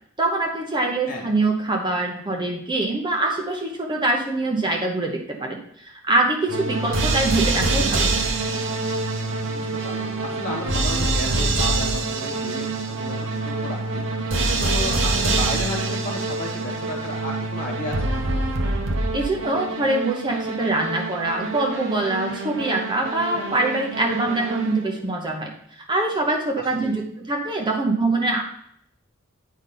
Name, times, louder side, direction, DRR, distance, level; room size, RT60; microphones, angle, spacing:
voice 1, 0.2-8.1 19.1-25.5 25.8-28.4, right 2 dB, 20° right, 0 dB, 0.9 m, -24 dB
sound 1, 6.5-25.0, right 2 dB, 60° right, 1.0 m, -25 dB
voice 2, 9.5-14.0 14.6-18.2 26.7-27.0, left 1 dB, 45° left, 0 dB, 1.8 m, -33 dB
8.4 x 5.3 x 3.8 m, 0.70 s
head